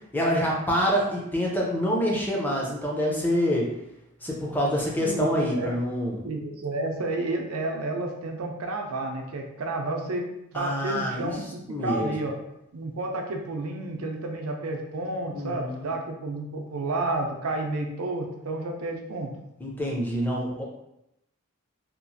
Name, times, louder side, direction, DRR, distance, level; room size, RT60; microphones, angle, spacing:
voice 1, 0.1-3.7 4.2-6.2 10.5-11.4 11.7-12.1 15.3-15.9 19.6-20.6, equal, 10° left, -3 dB, 0.5 m, -26 dB
voice 2, 5.0-5.7 6.2-12.4 12.7-19.3, right 2 dB, 85° right, 2 dB, 0.5 m, -31 dB
2.9 x 2.4 x 2.6 m, 0.85 s
head